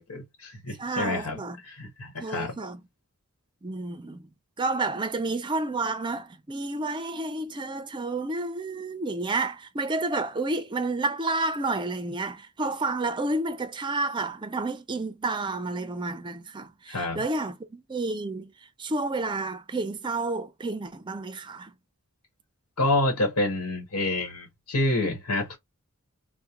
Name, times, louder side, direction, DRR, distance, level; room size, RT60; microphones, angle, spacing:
voice 1, 0.0-2.6 16.9-17.2 22.8-25.6, left 2 dB, 90° left, 1.1 m, -28 dB
voice 2, 0.8-1.6 2.2-2.8 3.6-4.3 4.6-18.5 18.8-21.7, right 2 dB, 20° right, 0.4 m, -30 dB
3.6 x 2.1 x 2.9 m
head